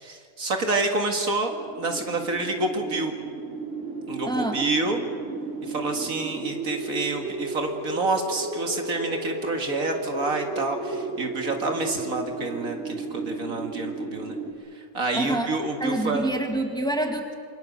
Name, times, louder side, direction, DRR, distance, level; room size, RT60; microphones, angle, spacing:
voice 1, 0.0-1.5 1.8-3.1 4.1-5.1 5.7-14.3 14.9-16.3, right 3 dB, 65° right, 4 dB, 2.4 m, -28 dB
sound 1, 1.5-14.5, right 2 dB, 50° right, 3.6 m, -34 dB
voice 2, 4.2-4.6 15.1-15.5 15.8-17.3, right 1 dB, 5° left, 3 dB, 2.1 m, -26 dB
27.5 x 23.5 x 6.8 m, 2.1 s
omnidirectional pair, 1.6 m